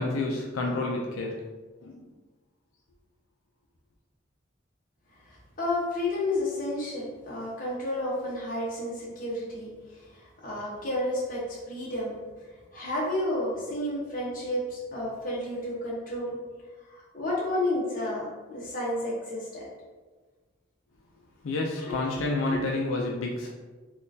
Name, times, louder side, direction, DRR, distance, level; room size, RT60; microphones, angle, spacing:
voice 1, 0.0-1.4 1.8-2.1 21.4-23.5, left 2 dB, 90° left, 0 dB, 0.4 m, -29 dB
voice 2, 5.3-9.7 10.2-12.1 12.7-16.4 16.9-19.7 22.5-22.6, left 1 dB, 45° left, -5 dB, 0.9 m, -31 dB
3.7 x 2.3 x 2.7 m, 1.3 s
head